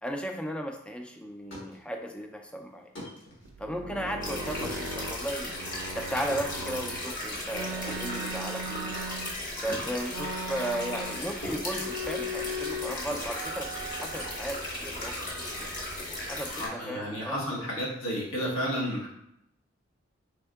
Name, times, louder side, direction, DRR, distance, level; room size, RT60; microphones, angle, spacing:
voice 1, 0.0-2.9 3.6-5.5 6.0-9.0 9.6-15.7 16.3-17.4, equal, 5° left, 3 dB, 0.3 m, -35 dB
sound 1, 1.3-11.2 11.4-14.4, left 1 dB, 65° left, 1.2 m, -46 dB
sound 2, 3.5-7.0 7.5-9.6 10.1-11.4 11.6-13.0 13.3-14.5 15.0-15.9 16.2-17.4, right 1 dB, 70° right, 0.4 m, -39 dB
sound 3, 4.2-16.7, left 1 dB, 45° left, 1.0 m, -36 dB
voice 2, 16.5-19.1, equal, 90° left, -5 dB, 1.2 m, -32 dB
3.6 x 3.4 x 2.3 m, 0.80 s
head